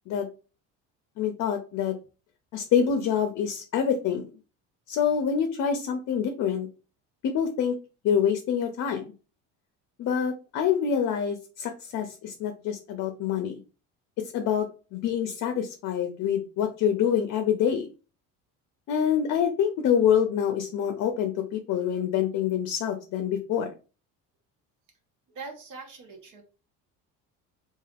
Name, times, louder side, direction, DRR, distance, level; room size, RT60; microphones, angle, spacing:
voice 1, 1.2-2.0 2.5-4.2 4.9-6.7 7.2-7.8 8.0-9.1 10.0-13.6 14.3-14.7 14.9-17.9 18.9-23.7, left 8 dB, 55° left, 6 dB, 0.5 m, -26 dB
voice 2, 25.3-26.4, right 4 dB, 65° right, 3 dB, 1.0 m, -42 dB
3.2 x 2.4 x 2.4 m, 0.34 s
cardioid pair, 100°, 34 cm